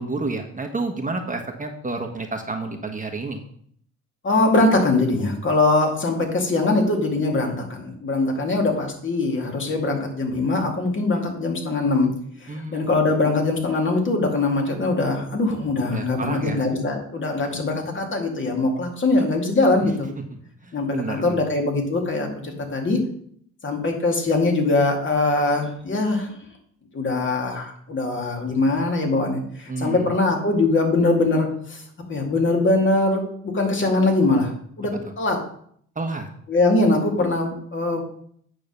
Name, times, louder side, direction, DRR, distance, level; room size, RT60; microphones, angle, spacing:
voice 1, 0.0-3.4 12.5-12.9 15.8-16.6 20.7-21.4 29.7-30.1 36.0-36.3, right 3 dB, 25° right, 3 dB, 1.3 m, -30 dB
voice 2, 4.2-12.1 12.4-20.1 20.7-23.0 23.6-26.3 26.9-31.8 32.1-34.5 34.8-35.4 36.5-38.0, left 2 dB, 40° left, 1 dB, 2.3 m, -22 dB
8.8 x 3.8 x 6.6 m, 0.64 s
cardioid pair, 90°, 30 cm